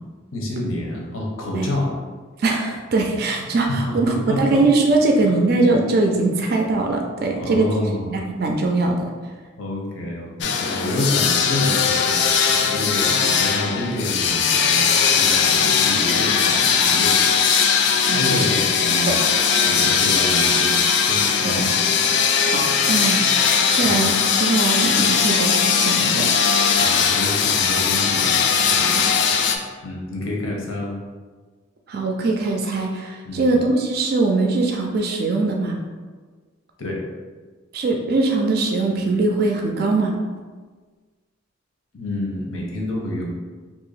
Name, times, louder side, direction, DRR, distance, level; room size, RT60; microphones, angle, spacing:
voice 1, 0.3-1.9 3.7-4.6 5.2-5.4 7.3-8.1 9.6-17.7 18.1-19.1 19.7-20.8 21.1-21.7 22.8-22.9 23.8-24.1 26.8-29.0 29.8-30.9 33.2-33.6 36.8-37.0 41.9-43.3, left 1 dB, 90° left, -1 dB, 0.8 m, -28 dB
voice 2, 2.4-7.7 8.0-9.0 18.1-18.6 19.1-19.2 21.4-21.7 22.5-23.2 23.7-26.3 28.9-29.1 31.9-35.8 37.7-40.1, right 3 dB, 50° right, 2 dB, 0.4 m, -21 dB
sound 1, 10.4-29.6, left 6 dB, 55° left, 0.3 m, -19 dB
2.8 x 2.5 x 4.0 m, 1.4 s
head